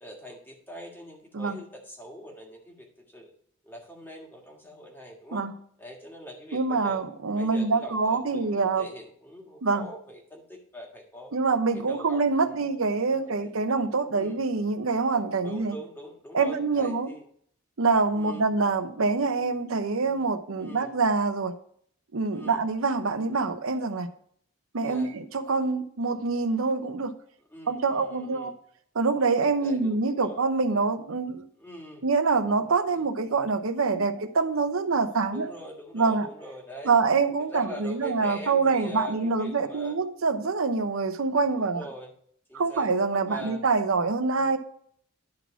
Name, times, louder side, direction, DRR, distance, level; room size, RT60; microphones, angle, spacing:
voice 1, 0.0-3.3 3.6-5.4 5.8-7.0 7.4-11.3 11.7-12.6 13.4-13.5 14.1-14.4 15.4-17.2 18.1-18.5 20.6-20.9 22.3-22.6 24.8-25.2 27.5-28.5 29.6-30.4 31.6-32.0 32.9-33.0 35.3-36.9 37.5-40.0 41.6-42.1 42.5-42.9 43.3-43.6, equal, 10° left, 0 dB, 1.7 m, -43 dB
voice 2, 6.5-8.9 9.6-9.9 11.3-15.8 16.3-17.1 17.8-21.5 22.1-24.1 24.7-27.1 27.7-28.5 28.9-31.4 32.0-35.5 35.9-36.3 36.8-41.8 42.5-44.6, right 4 dB, 90° right, 10 dB, 0.8 m, -25 dB
10.5 x 4.1 x 5.8 m, 0.63 s
head